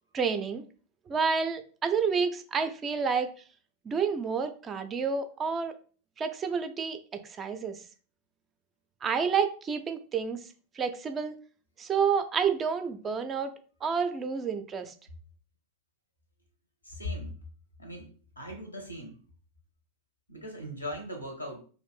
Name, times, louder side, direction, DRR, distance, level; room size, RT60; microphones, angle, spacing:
voice 1, 0.1-0.6 1.1-3.3 3.9-5.7 6.2-7.0 7.2-7.8 9.0-10.4 10.8-11.3 11.8-13.5 13.8-14.9, right 6 dB, 25° right, 7 dB, 0.4 m, -29 dB
voice 2, 16.8-17.4 17.8-19.2 20.3-21.6, left 1 dB, 85° left, 3 dB, 0.9 m, -39 dB
2.5 x 2.5 x 3.4 m, 0.39 s
figure-of-eight pair, 90°, 0 cm